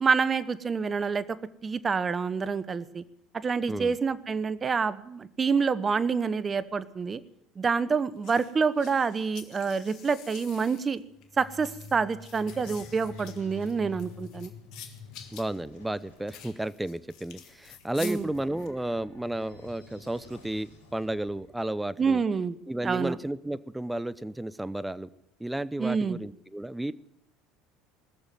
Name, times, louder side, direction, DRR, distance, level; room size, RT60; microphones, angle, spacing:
voice 1, 0.0-1.2 1.6-3.0 3.4-7.2 7.6-11.0 11.4-14.5 18.0-18.3 22.0-22.6 22.8-23.2 25.8-26.2, right 5 dB, 30° right, 16 dB, 0.9 m, -27 dB
sound 1, 8.2-18.7, left 9 dB, 60° left, 1.7 m, -49 dB
sound 2, 11.1-21.6, left 4 dB, 85° left, 3.2 m, -49 dB
voice 2, 15.3-22.2 22.7-25.1 25.4-26.9, right 1 dB, 5° right, 17 dB, 0.7 m, -33 dB
19.0 x 7.0 x 9.2 m, 0.80 s
hypercardioid pair, 75°, 0 cm